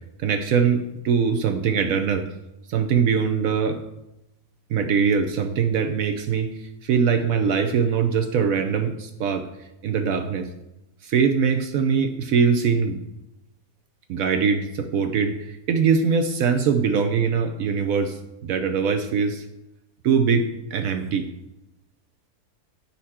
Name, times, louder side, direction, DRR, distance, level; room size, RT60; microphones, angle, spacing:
voice 1, 0.2-2.3 2.7-3.8 4.7-9.5 9.8-10.5 11.0-13.0 14.1-19.4 20.0-21.3, right 6 dB, 70° right, 7 dB, 0.9 m, -22 dB
9.7 x 4.3 x 4.2 m, 0.92 s
omnidirectional pair, 1.7 m